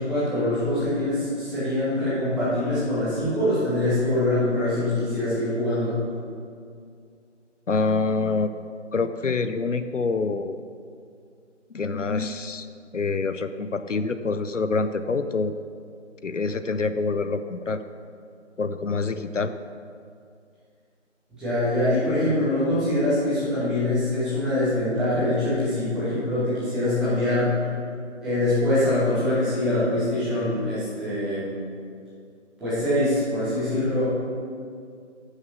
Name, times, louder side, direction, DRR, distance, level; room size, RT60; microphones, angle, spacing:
voice 1, 0.0-5.9 21.3-27.6 28.2-31.5 32.6-34.1, left 1 dB, ahead, -15 dB, 1.6 m, -24 dB
voice 2, 7.7-8.5 8.9-10.6 11.7-12.7 12.9-15.5 16.2-17.8 18.6-19.5, left 4 dB, 80° left, 10 dB, 0.7 m, -26 dB
12.0 x 6.5 x 6.3 m, 2.3 s
figure-of-eight pair, 155°, 37 cm